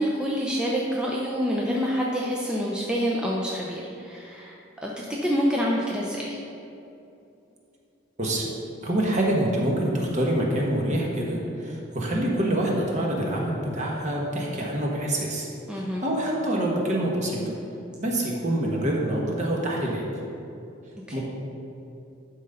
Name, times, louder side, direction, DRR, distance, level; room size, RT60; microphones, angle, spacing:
voice 1, 0.0-4.6 4.8-6.4 15.7-16.0 21.1-21.2, equal, 5° right, -4 dB, 0.6 m, -27 dB
voice 2, 8.8-17.4 18.0-20.0 21.1-21.2, right 1 dB, 35° right, -2 dB, 1.3 m, -26 dB
11.5 x 3.8 x 5.6 m, 2.8 s
head